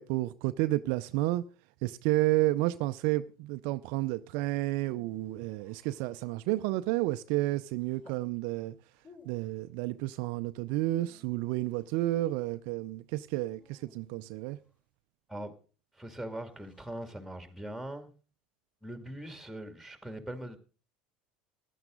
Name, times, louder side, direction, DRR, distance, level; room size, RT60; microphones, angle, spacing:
voice 1, 0.0-1.4 1.8-8.7 9.3-14.6, right 17 dB, 65° right, 0.5 m, -31 dB
sound 1, 4.5-6.5 7.8-8.3 8.9-9.6 10.7-12.0 13.5-14.7 16.3-17.1, left 2 dB, 35° left, 5.6 m, -61 dB
voice 2, 16.0-18.1 18.8-20.6, right 1 dB, ahead, 2.3 m, -41 dB
15.0 x 11.0 x 3.8 m
hypercardioid pair, 75°, 4 cm